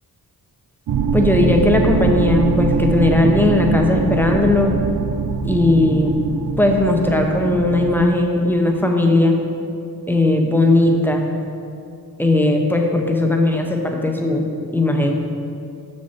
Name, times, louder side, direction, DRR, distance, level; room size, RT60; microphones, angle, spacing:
sound 1, 0.9-8.1, right 5 dB, 60° right, 0.5 m, -22 dB
voice 1, 1.1-4.7 5.4-6.2 6.6-9.4 10.1-11.3 12.2-14.5 14.7-15.1, left 2 dB, 5° left, 2 dB, 0.6 m, -17 dB
6.9 x 6.4 x 4.2 m, 2.5 s
wide cardioid pair, 140°, 38 cm